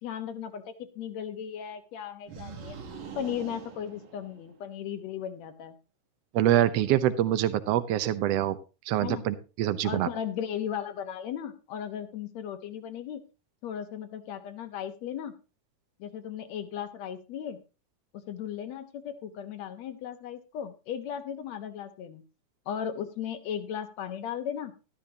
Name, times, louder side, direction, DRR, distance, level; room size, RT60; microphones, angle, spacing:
voice 1, 0.0-2.8 3.2-5.8 9.0-9.2 9.8-13.2 13.6-15.4 16.0-17.6 18.1-22.2 22.7-24.7, left 9 dB, 65° left, 9 dB, 2.1 m, -36 dB
sound 1, 2.3-4.7, right 6 dB, 55° right, 1.5 m, -43 dB
voice 2, 6.3-8.6 8.9-10.1, right 12 dB, 75° right, 12 dB, 1.5 m, -25 dB
13.0 x 12.0 x 2.9 m, 0.31 s
omnidirectional pair, 3.8 m